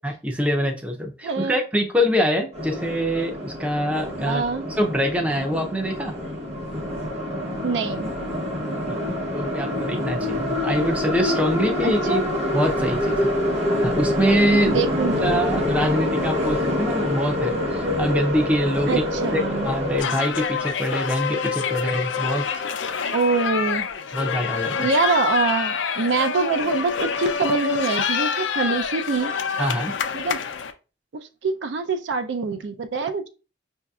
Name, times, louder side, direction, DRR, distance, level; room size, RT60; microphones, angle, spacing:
voice 1, 0.0-6.1 8.9-9.0 9.3-12.3 12.5-13.3 13.8-14.8 15.2-19.0 19.3-22.5 24.1-24.9 29.6-29.9, equal, 5° right, 0.5 m, -24 dB
voice 2, 1.2-1.6 4.3-4.7 7.6-8.1 11.8-12.2 14.6-15.3 18.9-19.7 23.1-23.9 24.8-29.3 30.1-30.4 31.4-33.2, right 4 dB, 70° right, 0.4 m, -24 dB
sound 1, 2.5-20.0, left 1 dB, 35° right, 0.9 m, -26 dB
sound 2, 20.0-30.7, left 6 dB, 80° left, 0.5 m, -26 dB
5.6 x 2.7 x 2.3 m
head